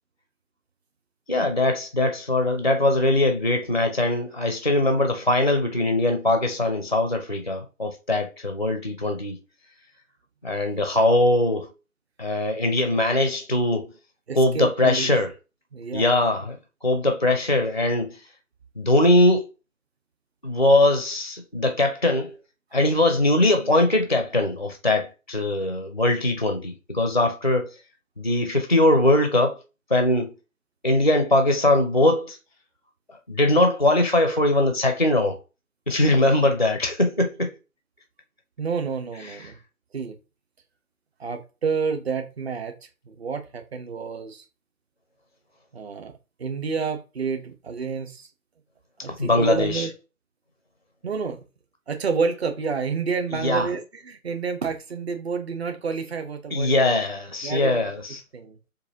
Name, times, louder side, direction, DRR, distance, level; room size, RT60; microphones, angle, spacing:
voice 1, 1.3-9.4 10.4-11.7 12.2-13.9 14.3-15.3 15.9-18.2 18.8-19.5 20.4-22.3 22.7-27.7 28.2-29.6 29.9-30.3 30.8-32.4 33.3-35.4 35.9-37.5 39.2-39.5 49.0-49.9 53.3-53.7 56.5-58.2, left 1 dB, 35° left, 0.4 m, -21 dB
voice 2, 14.3-15.1 15.7-16.1 38.6-39.6 39.9-40.2 41.2-42.7 43.0-44.4 45.7-46.1 46.4-48.3 49.0-49.9 51.0-51.4 51.9-57.0 57.4-57.8 58.3-58.6, right 5 dB, 45° right, 0.9 m, -29 dB
6.8 x 2.5 x 2.8 m
figure-of-eight pair, 155°, 44 cm